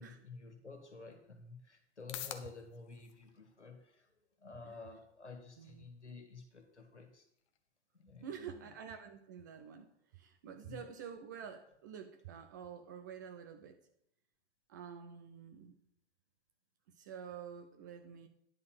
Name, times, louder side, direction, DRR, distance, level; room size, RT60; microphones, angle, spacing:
voice 1, 0.0-7.3 7.9-8.7 10.6-10.8, left 4 dB, 80° left, 4 dB, 1.9 m, -52 dB
sound 1, 1.5-17.6, left 11 dB, 25° left, 0.6 m, -58 dB
voice 2, 8.2-13.8 14.7-15.7 17.0-18.3, right 7 dB, 20° right, 7 dB, 0.4 m, -48 dB
9.9 x 4.3 x 7.4 m, 0.73 s
figure-of-eight pair, 110°, 34 cm